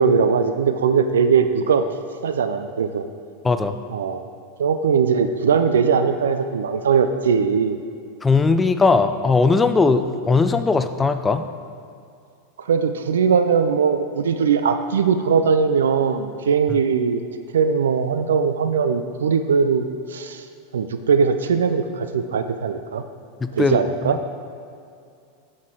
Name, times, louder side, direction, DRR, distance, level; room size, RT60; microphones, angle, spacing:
voice 1, 0.0-1.8 2.2-3.0 3.9-4.2 4.6-7.8 12.7-17.2 17.5-20.4 20.7-23.0 23.5-24.2, right 6 dB, 80° right, 9 dB, 0.3 m, -20 dB
voice 2, 3.4-3.8 8.2-11.4 23.4-24.2, left 4 dB, 15° left, 9 dB, 0.4 m, -19 dB
7.2 x 6.4 x 3.7 m, 2.4 s
hypercardioid pair, 95°, 0 cm